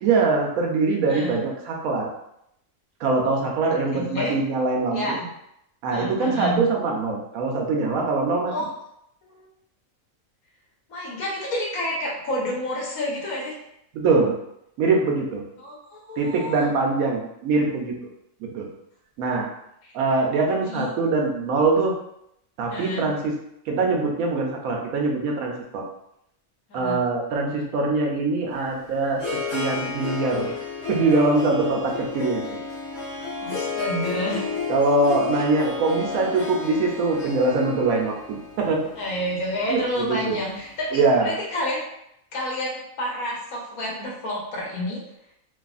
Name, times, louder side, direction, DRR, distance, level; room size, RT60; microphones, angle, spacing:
voice 1, 0.0-2.1 3.0-5.2 5.8-8.5 13.9-14.3 14.8-15.4 16.2-18.0 18.4-18.7 19.2-19.5 19.9-21.9 22.6-23.3 23.7-25.8 26.7-29.2 29.5-30.6 30.9-32.6 34.7-38.8 39.7-40.3 40.9-41.4, right 3 dB, 85° right, 0 dB, 1.1 m, -23 dB
voice 2, 1.1-1.4 3.9-4.3 4.9-5.3 5.9-6.6 8.5-8.7 9.3-9.5 10.9-13.6 15.6-16.7 19.8-19.9 20.6-20.9 22.7-23.1 26.7-27.0 33.4-34.4 35.3-35.4 39.0-41.8 42.3-45.0, left 1 dB, 90° left, -3 dB, 1.4 m, -29 dB
Harp, 28.5-40.7, left 4 dB, 70° left, 1.3 m, -32 dB
3.3 x 2.4 x 2.4 m, 0.78 s
omnidirectional pair, 1.4 m